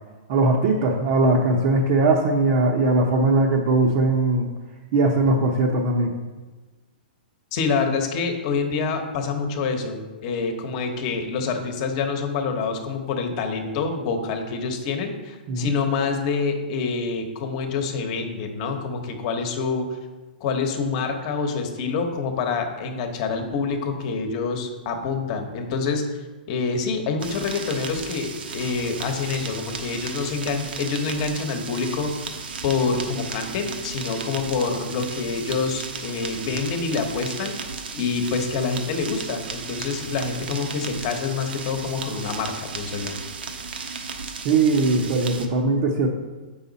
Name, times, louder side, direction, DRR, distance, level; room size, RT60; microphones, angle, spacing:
voice 1, 0.3-4.5 4.9-6.1 15.5-15.7 44.4-46.1, right 2 dB, 40° right, -1 dB, 0.8 m, -20 dB
voice 2, 7.5-20.0 20.4-26.0 26.5-37.5 37.9-43.1, left 4 dB, 40° left, 5 dB, 1.1 m, -26 dB
sound 1, 27.2-45.5, right 5 dB, 80° right, 1.1 m, -35 dB
7.8 x 5.6 x 4.1 m, 1.3 s
hypercardioid pair, 150°, 5 cm